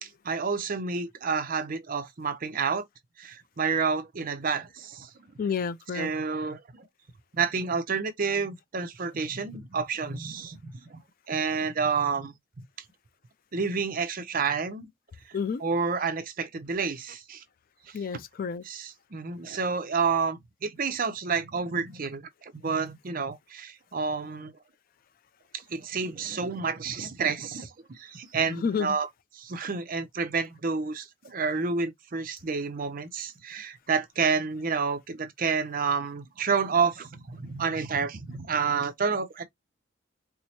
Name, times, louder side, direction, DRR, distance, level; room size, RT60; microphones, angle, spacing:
voice 1, 0.0-2.8 3.2-5.1 5.9-6.6 7.3-11.0 11.3-12.6 13.5-14.9 15.6-17.4 17.9-18.0 18.6-24.5 25.5-29.1 29.3-39.5, right 5 dB, 45° right, 0.6 m, -29 dB
voice 2, 5.4-6.1 15.3-15.6 17.9-18.6 28.5-29.0, left 6 dB, 45° left, 0.3 m, -30 dB
4.5 x 2.0 x 2.8 m
head